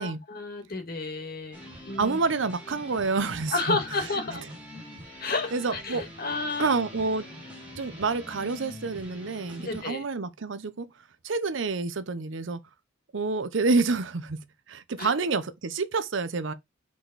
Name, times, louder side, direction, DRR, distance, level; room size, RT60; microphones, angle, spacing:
voice 1, 0.0-2.2 3.5-4.4 5.2-6.7 9.6-10.0 15.0-15.1, left 3 dB, 50° left, 1.6 m, -31 dB
sound 1, 1.5-9.8, equal, 5° right, 2.7 m, -44 dB
voice 2, 2.0-3.8 5.5-6.0 6.6-7.3 7.8-10.9 11.2-12.6 13.1-16.5, right 4 dB, 70° right, 0.7 m, -28 dB
6.0 x 4.9 x 4.0 m
head